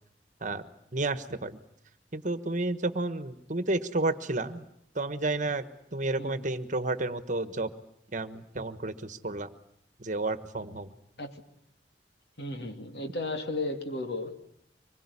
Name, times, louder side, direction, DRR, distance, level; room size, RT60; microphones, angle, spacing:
voice 1, 0.9-1.6 2.1-4.7 4.9-5.6 5.9-7.7 8.1-9.5 10.0-10.9, right 2 dB, 45° right, 12 dB, 1.3 m, -31 dB
voice 2, 12.4-14.4, left 2 dB, 65° left, 6 dB, 2.7 m, -34 dB
25.0 x 21.5 x 9.8 m, 0.72 s
head